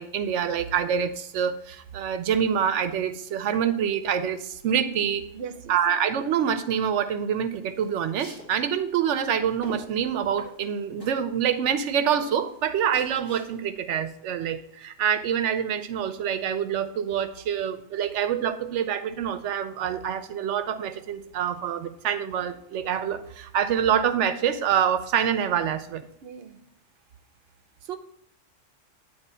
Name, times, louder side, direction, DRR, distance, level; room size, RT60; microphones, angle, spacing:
voice 1, 0.0-5.2 5.7-26.0, right 8 dB, 90° right, 11 dB, 0.9 m, -26 dB
voice 2, 5.3-5.8 26.2-26.7 27.8-28.0, right 8 dB, 65° right, 7 dB, 0.8 m, -38 dB
sound 1, 7.6-13.9, equal, 20° left, 2.1 m, -46 dB
9.2 x 3.1 x 5.5 m, 0.73 s
omnidirectional pair, 1.2 m